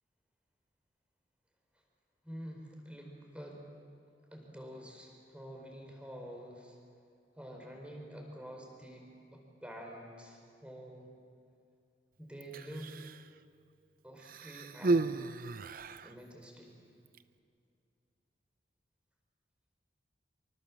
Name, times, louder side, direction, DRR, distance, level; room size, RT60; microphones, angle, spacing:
voice 1, 2.2-3.6 4.3-6.8 7.4-11.1 12.2-12.9 14.0-15.4 16.0-16.7, equal, 5° right, 1 dB, 4.6 m, -48 dB
Human voice, 12.4-13.3 14.2-16.1 17.1-17.2, right 3 dB, 50° right, 0.6 m, -34 dB
25.5 x 25.0 x 7.4 m, 2.5 s
head